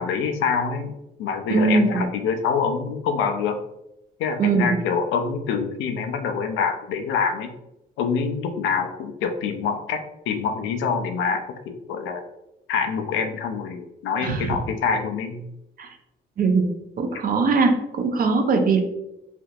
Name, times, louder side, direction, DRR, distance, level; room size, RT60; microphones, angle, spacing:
voice 1, 0.0-3.6 4.2-7.5 8.0-12.2 12.7-15.5, left 5 dB, 90° left, 7 dB, 0.4 m, -26 dB
voice 2, 1.5-2.0 4.4-4.7 14.2-14.6 15.8-15.9 16.4-16.7 17.0-18.8, right 4 dB, 45° right, 5 dB, 0.6 m, -21 dB
3.4 x 2.8 x 2.3 m, 0.88 s
cardioid pair, 90°, 20 cm